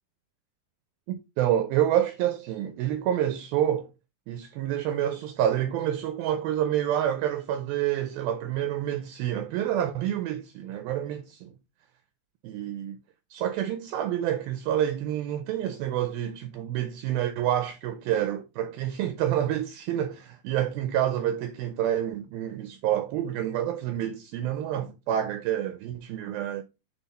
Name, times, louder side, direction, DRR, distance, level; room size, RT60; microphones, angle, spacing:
voice 1, 1.1-3.9 4.3-11.5 12.4-13.0 13.3-26.6, right 11 dB, 80° right, 2.2 m, -28 dB
7.3 x 4.0 x 4.1 m
omnidirectional pair, 4.7 m